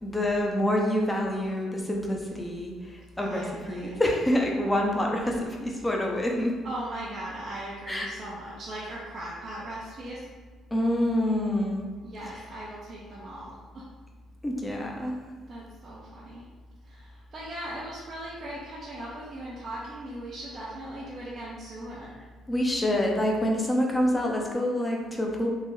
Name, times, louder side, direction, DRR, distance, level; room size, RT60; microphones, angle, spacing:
voice 1, 0.0-6.5 7.9-8.1 10.7-11.8 14.4-15.2 22.5-25.5, left 1 dB, 15° left, 0 dB, 0.9 m, -27 dB
voice 2, 3.2-4.0 6.6-10.2 12.0-13.8 15.5-16.4 16.9-22.1, right 1 dB, 50° right, -7 dB, 0.8 m, -38 dB
3.7 x 2.5 x 3.3 m, 1.5 s
supercardioid pair, 60°, 0 cm